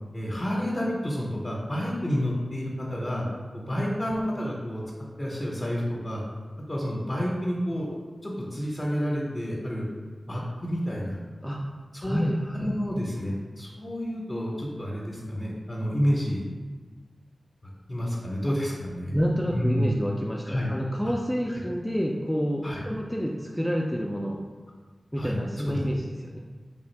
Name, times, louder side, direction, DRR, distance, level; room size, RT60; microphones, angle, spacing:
voice 1, 0.1-3.3 3.5-4.8 5.2-6.2 6.7-7.9 8.2-9.9 10.3-11.2 11.9-12.2 12.5-16.4 17.9-19.1 19.5-19.9 20.5-20.7 21.5-21.6 22.6-22.8 25.2-25.4 25.6-25.8, equal, 35° left, -4 dB, 0.7 m, -29 dB
voice 2, 12.0-12.7 19.1-24.4 25.1-26.4, equal, 5° left, -2 dB, 0.3 m, -29 dB
3.3 x 2.4 x 4.3 m, 1.4 s
wide cardioid pair, 60°, 0 cm